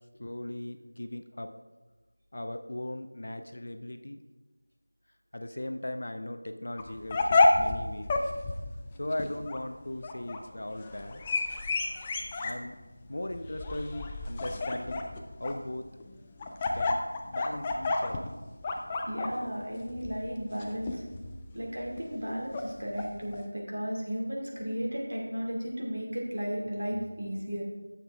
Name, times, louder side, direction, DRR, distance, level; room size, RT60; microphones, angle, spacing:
voice 1, 0.1-1.5 2.3-4.2 5.3-8.1 9.0-11.2 12.4-12.8 13.1-15.0 15.4-15.9 16.7-18.3, left 1 dB, 50° left, 8 dB, 0.6 m, -38 dB
sound 1, 6.8-23.4, left 2 dB, 10° left, 0.3 m, -31 dB
voice 2, 19.1-21.0 21.5-27.6, equal, 65° right, -2 dB, 2.4 m, -34 dB
9.1 x 7.3 x 3.5 m, 1.2 s
figure-of-eight pair, 175°, 0 cm